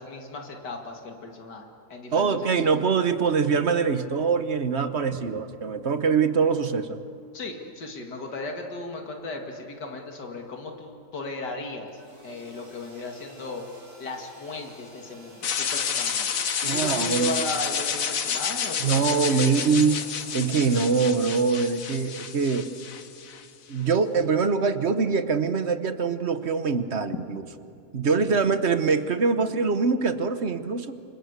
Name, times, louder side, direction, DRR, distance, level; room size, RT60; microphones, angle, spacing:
voice 1, 0.0-2.6 5.1-5.2 7.3-13.6 14.0-16.3 16.6-19.6 28.2-28.3, left 2 dB, 85° left, 2 dB, 2.8 m, -36 dB
voice 2, 2.1-7.0 16.6-17.4 18.8-20.0 20.3-22.7 23.7-27.4 27.9-31.0, right 5 dB, 45° right, 10 dB, 1.2 m, -23 dB
sound 1, 11.9-21.9, right 1 dB, 65° right, 5.7 m, -50 dB
sound 2, 15.4-23.5, left 7 dB, 55° left, 1.5 m, -30 dB
28.0 x 25.5 x 8.1 m, 2.6 s
omnidirectional pair, 1.8 m